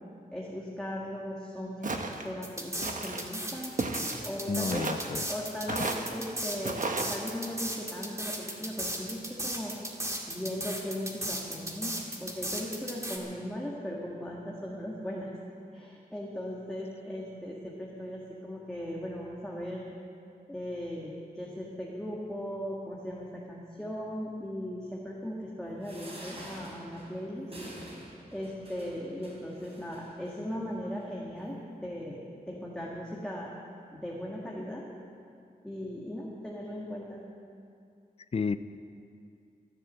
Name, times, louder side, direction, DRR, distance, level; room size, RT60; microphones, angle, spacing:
voice 1, 0.3-3.7 4.2-4.8 5.3-9.8 10.3-15.3 15.7-20.0 20.5-27.5 28.3-33.5 33.9-34.9 35.6-37.2, equal, 5° left, -4 dB, 1.9 m, -38 dB
Walk footsteps, 1.8-2.3 2.8-3.3 3.8-4.3 4.7-5.1 5.7-6.1 6.6-7.1, right 3 dB, 55° right, 1.2 m, -33 dB
sound 1, 2.4-13.2, right 1 dB, 20° right, 2.1 m, -35 dB
voice 2, 4.5-5.3 5.7-5.8 38.3-38.6, left 5 dB, 40° left, 13 dB, 0.5 m, -31 dB
sound 2, 25.8-30.4 31.0-31.1 31.4-31.5, right 1 dB, 40° right, 4.4 m, -47 dB
14.0 x 11.0 x 7.6 m, 2.4 s
wide cardioid pair, 90°, 16 cm